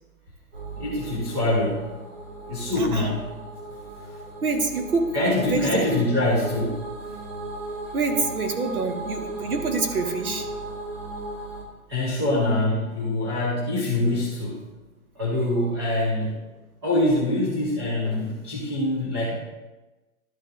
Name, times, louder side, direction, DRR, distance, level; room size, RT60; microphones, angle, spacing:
sound 1, 0.5-11.6, right 2 dB, 55° right, 2.1 m, -37 dB
voice 1, 0.8-1.9 2.5-3.2 5.1-6.9 11.9-14.7 15.1-16.4 16.8-19.3, left 1 dB, 20° right, -7 dB, 1.0 m, -24 dB
voice 2, 2.8-3.1 4.4-5.2 5.4-5.9 7.9-10.5, right 3 dB, 75° right, 4 dB, 1.6 m, -26 dB
12.0 x 7.0 x 2.5 m, 1.1 s
hypercardioid pair, 180°, 44 cm